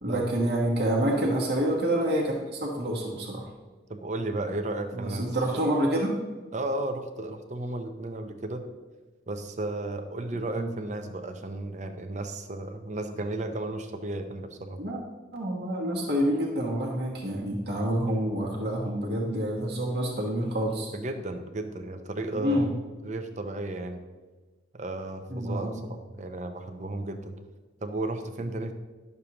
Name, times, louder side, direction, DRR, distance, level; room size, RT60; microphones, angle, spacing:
voice 1, 0.0-3.4 4.9-6.1 10.6-10.7 14.8-15.0 15.3-20.9 22.3-22.7 25.3-25.8, right 1 dB, 55° right, -3 dB, 1.2 m, -27 dB
voice 2, 3.9-5.3 6.5-8.6 9.3-14.8 20.9-22.7 23.0-24.0 24.7-27.3 27.8-28.7, right 2 dB, 40° right, 7 dB, 0.6 m, -34 dB
11.0 x 6.7 x 2.9 m, 1.3 s
head